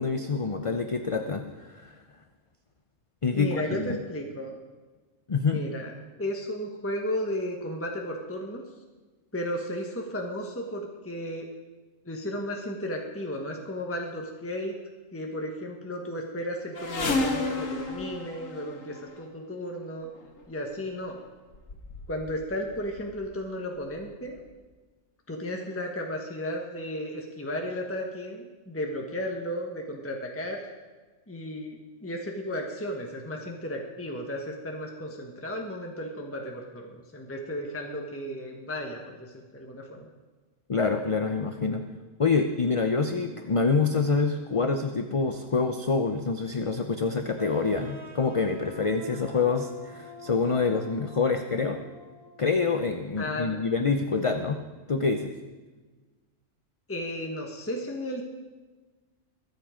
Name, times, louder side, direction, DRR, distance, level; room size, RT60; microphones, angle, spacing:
voice 1, 0.0-1.9 3.2-4.0 5.3-5.6 40.7-41.8 42.2-51.8 52.4-54.6 54.9-55.3, left 4 dB, 35° left, 6 dB, 0.6 m, -26 dB
voice 2, 3.3-4.6 5.4-5.9 6.2-8.6 9.3-11.5 12.0-14.7 15.1-20.1 20.5-21.2 22.1-24.4 25.3-30.6 31.3-40.1 53.2-53.6 56.9-58.2, equal, 10° left, 1 dB, 1.3 m, -34 dB
sound 1, 16.7-19.2 20.2-20.4 21.2-21.3 21.5-22.4 22.7-23.3 24.0-24.1 24.4-24.5, left 2 dB, 85° left, 1.8 m, -32 dB
sound 2, 47.4-52.9, right 2 dB, 30° right, 1.4 m, -47 dB
22.5 x 8.2 x 5.1 m, 1.3 s
omnidirectional pair, 1.3 m